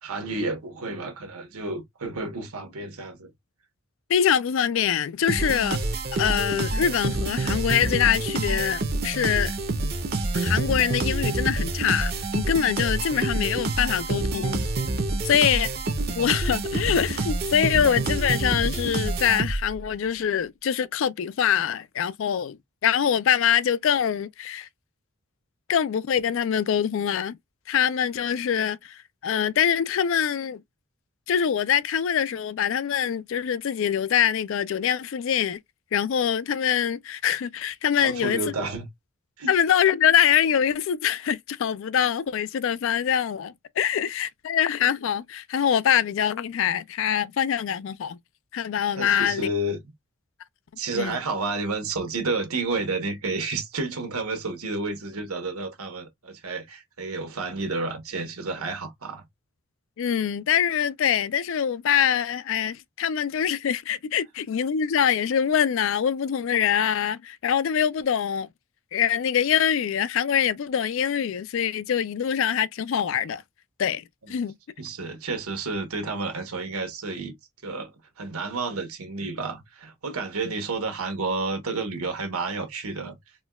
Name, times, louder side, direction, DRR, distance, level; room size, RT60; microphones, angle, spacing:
voice 1, 0.0-3.3 38.0-38.9 39.4-39.5 49.0-49.8 50.8-59.2 74.2-74.3 74.8-77.3 77.6-77.9 78.2-83.2, right 3 dB, 80° right, 1.1 m, -30 dB
voice 2, 4.1-5.8 6.1-9.5 10.3-14.6 15.2-15.7 16.2-22.6 22.8-24.7 25.7-27.4 27.7-30.6 31.3-35.6 35.9-38.4 39.5-48.2 48.5-49.5 50.9-51.2 60.0-68.5 68.9-73.4 73.8-74.5, left 8 dB, 60° left, 0.3 m, -24 dB
sound 1, 5.3-19.8, right 2 dB, 45° right, 0.6 m, -27 dB
4.3 x 2.2 x 2.2 m
head